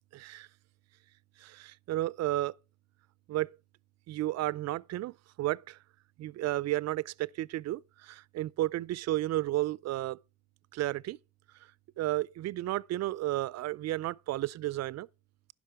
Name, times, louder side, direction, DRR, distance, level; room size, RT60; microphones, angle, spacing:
voice 1, 0.1-0.5 1.4-2.5 3.3-3.6 4.1-5.8 6.2-10.2 10.7-11.2 12.0-15.1, right 16 dB, 60° right, 0.4 m, -32 dB
11.5 x 5.2 x 4.7 m
cardioid pair, 90°, 30 cm